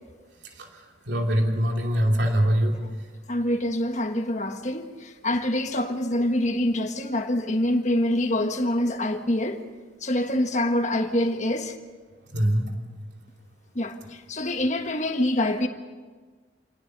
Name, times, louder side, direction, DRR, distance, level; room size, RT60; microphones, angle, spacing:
voice 1, 1.1-2.8 12.3-12.7, equal, 70° right, 2.9 m, -22 dB
voice 2, 3.3-9.6 10.0-11.8 13.7-15.7, left 1 dB, 40° left, 1.5 m, -25 dB
27.0 x 18.5 x 6.7 m
head